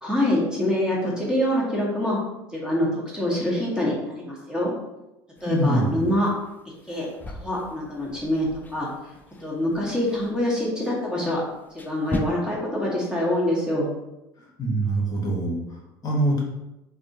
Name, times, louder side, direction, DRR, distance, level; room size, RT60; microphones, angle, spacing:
voice 1, 0.0-2.2 2.5-4.7 5.4-6.3 6.9-8.5 8.7-8.9 9.4-11.4 11.8-13.9, left 1 dB, 5° right, -4 dB, 0.9 m, -25 dB
voice 2, 5.4-6.1 14.6-16.4, right 1 dB, 35° left, -3 dB, 0.9 m, -24 dB
sound 1, 5.4-12.2, left 3 dB, 15° left, 0.3 m, -39 dB
2.7 x 2.3 x 2.7 m, 0.95 s
hypercardioid pair, 75°, 12 cm